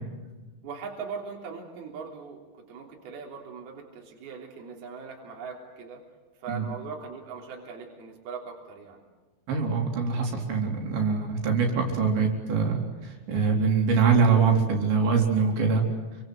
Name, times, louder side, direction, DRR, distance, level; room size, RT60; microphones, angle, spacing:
voice 1, 0.6-6.0 6.4-9.0, right 5 dB, 60° right, 0 dB, 5.3 m, -40 dB
voice 2, 9.5-15.8, right 5 dB, 75° right, 1 dB, 6.2 m, -24 dB
29.5 x 25.0 x 7.9 m, 1.2 s
omnidirectional pair, 5.2 m